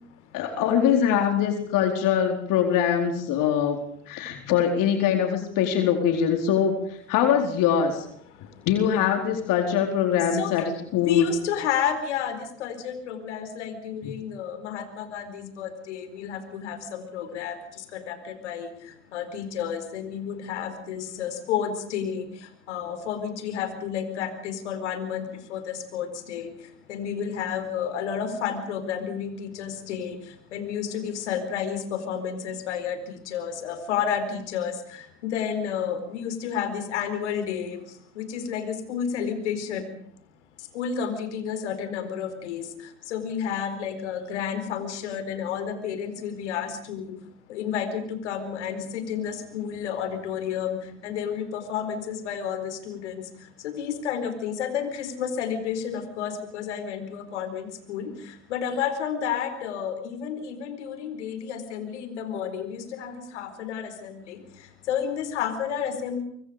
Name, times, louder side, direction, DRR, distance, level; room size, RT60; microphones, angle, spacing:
voice 1, 0.3-3.8 4.1-6.8 7.1-8.0 8.7-11.3 14.0-14.1, left 8 dB, 65° left, 5 dB, 4.4 m, -23 dB
voice 2, 8.3-8.7 10.3-10.7 11.0-39.9 40.6-66.2, left 8 dB, 85° left, 10 dB, 4.4 m, -31 dB
26.0 x 24.0 x 5.1 m, 0.64 s
hypercardioid pair, 70°, 34 cm